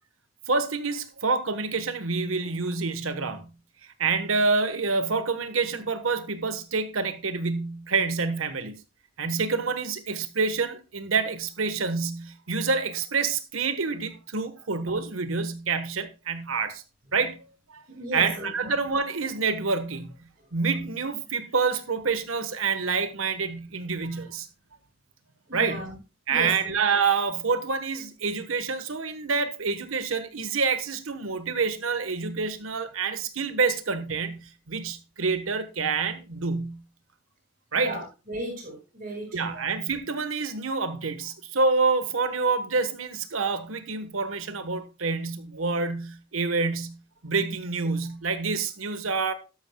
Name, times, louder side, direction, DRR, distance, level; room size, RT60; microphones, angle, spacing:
voice 1, 0.5-3.5 4.0-8.8 9.2-16.8 17.1-17.4 17.7-17.8 18.1-20.1 20.5-24.5 25.5-25.8 26.3-34.4 34.7-36.8 37.7-37.9 39.3-47.0 47.2-49.3, right 4 dB, 80° right, 1.3 m, -27 dB
voice 2, 17.9-18.7 25.5-26.0 26.3-26.7 37.7-39.7, right 1 dB, 40° right, 4.9 m, -35 dB
13.0 x 11.0 x 2.3 m
head